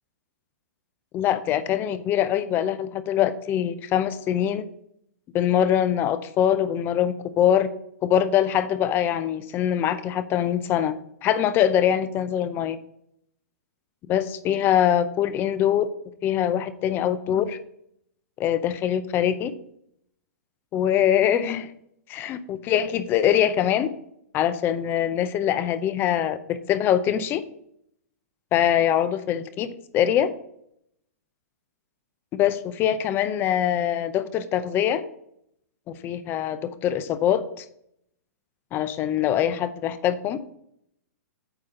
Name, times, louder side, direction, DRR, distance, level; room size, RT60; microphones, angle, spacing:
voice 1, 1.1-4.7 5.3-7.7 8.0-10.9 11.2-12.8 14.1-15.9 16.2-17.6 18.4-19.5 20.7-21.7 22.1-23.9 24.3-27.4 28.5-30.3 32.3-35.0 35.9-37.6 38.7-40.4, left 10 dB, 25° left, 13 dB, 0.6 m, -23 dB
9.0 x 3.6 x 6.5 m, 0.74 s
hypercardioid pair, 140°, 9 cm